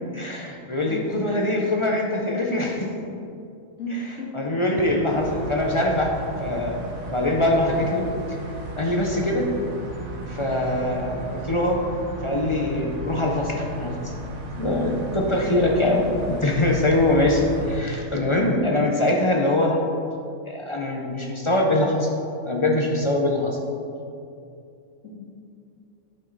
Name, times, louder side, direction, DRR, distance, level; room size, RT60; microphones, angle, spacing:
voice 1, 0.1-2.9 4.3-6.1 6.4-8.0 8.8-9.5 10.3-11.8 12.2-14.1 14.6-19.8 20.4-22.1 22.5-23.6, left 1 dB, 30° left, 0 dB, 0.7 m, -23 dB
voice 2, 3.8-4.3 25.0-25.1, equal, 75° left, -4 dB, 2.1 m, -33 dB
sound 1, 5.1-17.8, right 1 dB, 90° right, 1.6 m, -35 dB
11.0 x 5.5 x 4.0 m, 2.5 s
omnidirectional pair, 1.4 m